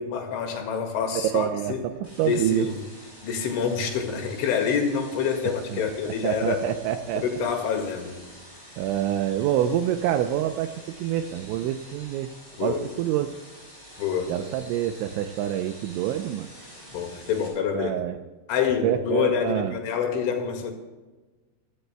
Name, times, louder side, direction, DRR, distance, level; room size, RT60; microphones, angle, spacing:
voice 1, 0.0-1.9 2.3-2.7 3.2-6.6 7.1-8.2 12.6-12.8 14.0-14.4 16.9-18.0 18.5-20.7, left 7 dB, 70° left, 4 dB, 4.1 m, -27 dB
voice 2, 1.2-2.7 5.7-7.2 8.8-12.3 12.6-13.4 14.3-16.5 17.7-18.2 18.8-19.7, right 11 dB, 85° right, 7 dB, 2.7 m, -27 dB
sound 1, 2.0-17.5, equal, 10° left, 5.6 m, -47 dB
24.5 x 16.5 x 2.2 m, 1.2 s
omnidirectional pair, 6.0 m